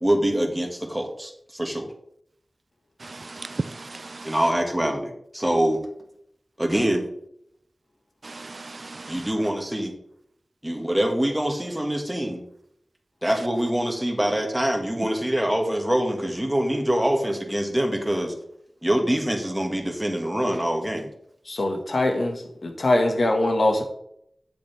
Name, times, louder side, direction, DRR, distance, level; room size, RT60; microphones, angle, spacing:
voice 1, 0.0-1.9 4.2-5.8 6.6-7.1 9.1-9.9 10.6-12.4 13.2-18.3 18.8-21.1, right 1 dB, 10° right, 2 dB, 1.8 m, -24 dB
voice 2, 3.0-4.5 6.7-6.8 8.2-9.3 14.9-15.1, right 3 dB, 55° right, 15 dB, 0.4 m, -36 dB
voice 3, 21.5-23.8, left 1 dB, 70° left, 3 dB, 1.7 m, -22 dB
8.3 x 8.0 x 3.5 m, 0.72 s
wide cardioid pair, 80°, 0 cm